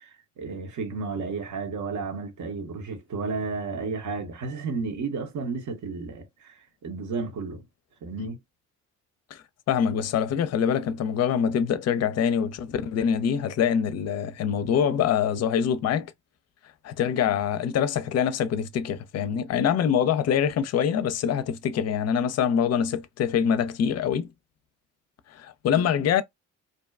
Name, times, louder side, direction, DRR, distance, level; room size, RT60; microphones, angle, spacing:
voice 1, 0.0-7.6 8.0-8.4, right 4 dB, 60° right, 0.9 m, -32 dB
voice 2, 9.3-16.1 16.8-24.3 25.3-26.2, left 8 dB, 50° left, 0.5 m, -25 dB
2.6 x 2.2 x 2.2 m
hypercardioid pair, 50°, 34 cm